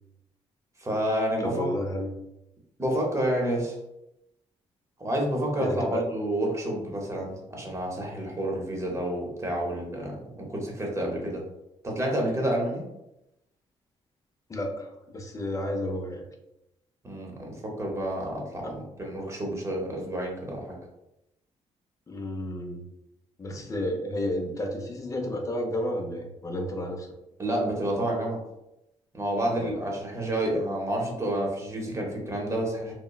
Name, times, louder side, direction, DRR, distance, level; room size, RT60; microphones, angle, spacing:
voice 1, 0.8-1.6 2.8-3.8 5.0-11.4 11.8-12.9 17.0-20.8 27.4-28.4 29.1-32.9, right 1 dB, 25° right, -1 dB, 0.8 m, -29 dB
voice 2, 1.4-2.2 5.6-6.1 14.5-16.2 18.6-18.7 22.1-22.8 23.4-27.1 29.5-29.8, left 1 dB, 25° left, 3 dB, 0.5 m, -32 dB
2.9 x 2.1 x 2.3 m, 0.88 s
cardioid pair, 85°, 12 cm